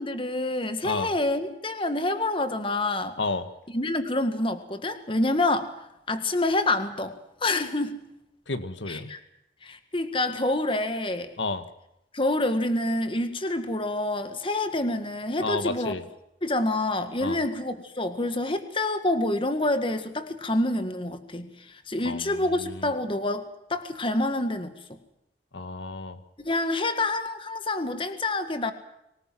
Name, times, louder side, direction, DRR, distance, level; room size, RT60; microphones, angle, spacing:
voice 1, 0.0-3.2 3.7-5.7 6.1-7.1 7.4-8.0 8.9-9.2 9.6-11.3 12.1-15.9 16.4-23.5 23.7-24.7 26.4-28.7, left 2 dB, 30° left, 9 dB, 1.8 m, -27 dB
voice 2, 8.5-9.1 11.4-11.6 15.4-16.0 17.2-17.4 22.0-22.3 22.6-22.9 25.5-26.2, left 3 dB, 90° left, 11 dB, 1.6 m, -31 dB
24.5 x 19.0 x 7.6 m, 0.83 s
head